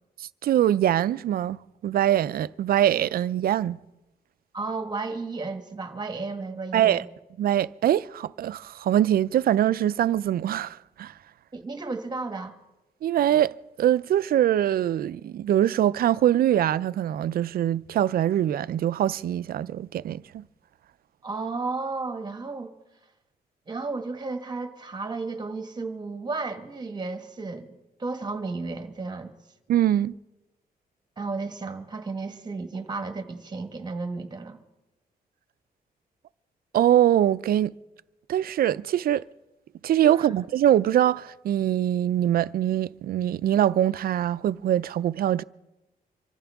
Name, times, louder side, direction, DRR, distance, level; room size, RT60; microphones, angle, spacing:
voice 1, 0.2-3.8 6.7-7.0 7.4-11.1 13.0-20.4 29.7-30.1 36.7-37.7 38.3-39.2 39.8-45.4, right 11 dB, 70° right, 0.4 m, -23 dB
voice 2, 4.5-7.0 11.5-12.5 21.2-22.7 23.7-29.3 31.2-34.6 40.1-40.3, right 3 dB, 25° right, 1.4 m, -33 dB
25.0 x 14.5 x 3.5 m
wide cardioid pair, 135°, 16 cm